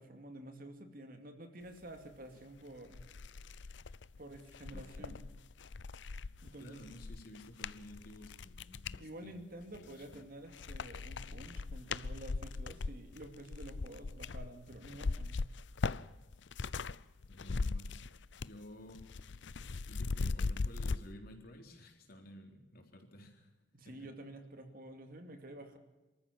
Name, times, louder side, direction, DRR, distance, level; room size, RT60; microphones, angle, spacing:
voice 1, 0.0-3.0 4.2-5.2 6.4-6.8 9.0-15.4 23.7-25.8, right 1 dB, 50° right, 6 dB, 2.6 m, -50 dB
sound 1, 2.4-2.5 2.9-9.0 9.6-10.2 10.5-17.0 17.2-18.6 18.9-21.0, left 4 dB, 70° left, 0.6 m, -39 dB
voice 2, 4.7-5.2 6.6-9.4 9.7-10.2 17.3-18.1 18.4-19.5 19.9-23.5 23.8-24.1, equal, 50° left, 3 dB, 4.0 m, -53 dB
26.5 x 14.0 x 7.4 m, 1.1 s
head